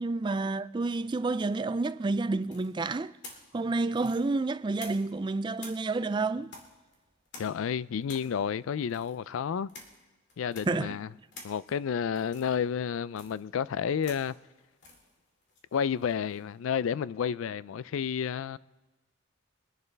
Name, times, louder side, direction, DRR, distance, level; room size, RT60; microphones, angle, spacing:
voice 1, 0.0-3.1 3.5-6.5 10.7-11.0, right 3 dB, 20° right, 0.3 m, -29 dB
sound 1, 2.4-5.2 5.6-16.5, left 3 dB, 55° left, 2.4 m, -51 dB
voice 2, 7.4-9.7 10.4-11.1 11.4-14.3 15.7-18.6, left 7 dB, 75° left, 0.4 m, -31 dB
23.0 x 11.0 x 3.4 m
head